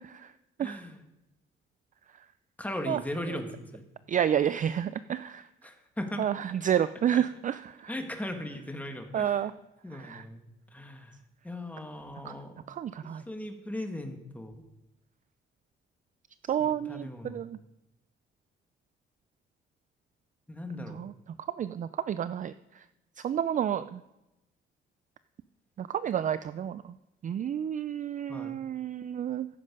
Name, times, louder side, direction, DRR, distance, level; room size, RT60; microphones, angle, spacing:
voice 1, 0.6-1.0 2.6-3.8 5.6-6.3 7.1-7.2 7.9-9.5 9.8-10.4 10.7-11.1 11.4-12.5 13.3-14.5 16.6-17.4 20.5-21.0 28.3-28.6, left 1 dB, 10° left, 4 dB, 1.8 m, -38 dB
voice 2, 4.1-5.4 6.2-7.6 9.1-9.5 10.0-10.2 12.3-12.4 12.8-13.2 16.5-17.6 20.9-21.1 21.6-22.5 23.2-24.0 25.8-26.8 27.2-29.5, right 9 dB, 40° right, 14 dB, 0.4 m, -29 dB
14.5 x 7.7 x 5.3 m, 0.97 s
cardioid pair, 90°, 20 cm